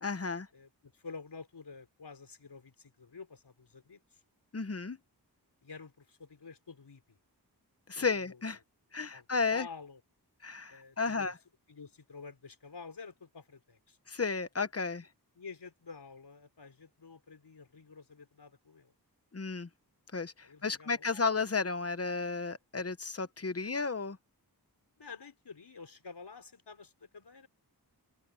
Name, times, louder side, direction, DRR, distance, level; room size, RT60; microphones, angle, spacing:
voice 1, 0.0-0.5 4.5-5.0 7.9-8.6 8.9-9.7 10.4-11.4 14.1-15.1 19.3-19.7 20.1-24.2, left 4 dB, 35° left, 1.1 m, -33 dB
voice 2, 0.5-4.2 5.6-7.2 8.1-8.4 9.1-9.2 9.5-10.0 10.7-11.3 11.7-14.0 15.3-18.9 20.4-21.2 23.8-23.9 25.0-27.5, left 5 dB, 85° left, 4.7 m, -50 dB
open air
wide cardioid pair, 80°, 39 cm